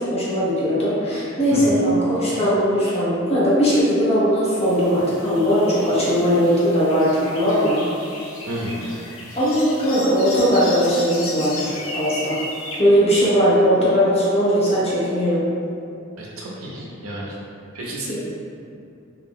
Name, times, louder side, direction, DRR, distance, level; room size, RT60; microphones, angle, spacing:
voice 1, 0.0-7.8 9.4-12.4 12.8-15.4 18.1-18.2, equal, 30° left, -9 dB, 0.7 m, -19 dB
sound 1, 4.6-12.8, left 2 dB, 65° left, 0.5 m, -35 dB
voice 2, 8.5-8.8 16.2-17.4 17.7-18.2, right 1 dB, 75° right, -4 dB, 0.6 m, -31 dB
2.4 x 2.1 x 3.6 m, 2.5 s
head